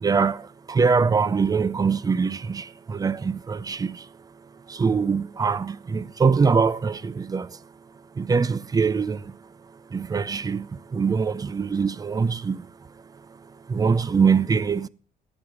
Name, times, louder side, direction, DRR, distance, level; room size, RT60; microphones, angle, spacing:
voice 1, 0.0-4.1 4.7-7.6 8.1-9.3 9.9-12.7 13.4-14.9, right 5 dB, 20° right, 0.5 m, -23 dB
15.0 x 9.1 x 4.8 m
cardioid pair, 110°, 17 cm